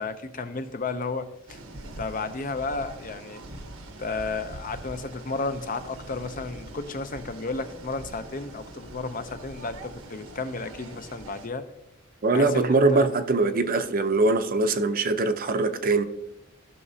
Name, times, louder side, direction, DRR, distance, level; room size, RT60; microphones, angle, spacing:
voice 1, 0.0-1.6 1.8-3.4 4.0-11.6 12.3-13.1, left 3 dB, 40° left, 0.6 m, -33 dB
sound 1, 1.5-11.5, right 2 dB, 80° right, 1.1 m, -43 dB
voice 2, 12.2-16.0, right 3 dB, 45° right, 0.6 m, -22 dB
15.5 x 6.0 x 2.7 m
head